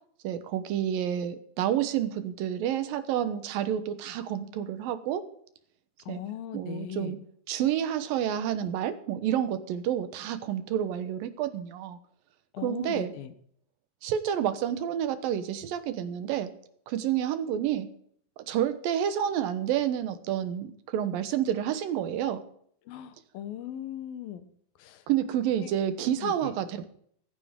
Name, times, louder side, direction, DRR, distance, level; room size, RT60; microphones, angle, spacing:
voice 1, 0.2-5.2 6.1-6.2 6.5-7.2 7.5-12.0 12.6-13.1 14.0-16.5 16.9-17.9 18.4-22.4 25.1-26.9, right 10 dB, 85° right, 11 dB, 2.8 m, -29 dB
voice 2, 6.1-7.2 12.5-13.3 22.9-24.5 24.8-25.1 25.4-25.7 26.2-26.5, left 10 dB, 90° left, 11 dB, 2.8 m, -39 dB
15.0 x 14.5 x 3.7 m, 0.63 s
omnidirectional pair, 4.0 m